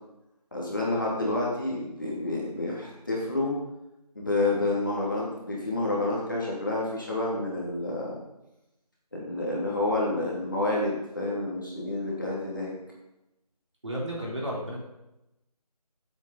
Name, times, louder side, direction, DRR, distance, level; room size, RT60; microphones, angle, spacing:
voice 1, 0.5-3.5 4.1-8.2 9.1-12.7, left 2 dB, 30° left, -4 dB, 2.6 m, -29 dB
voice 2, 13.8-14.8, equal, 45° right, -4 dB, 3.8 m, -32 dB
15.5 x 8.1 x 4.0 m, 0.93 s
figure-of-eight pair, 180°, 21 cm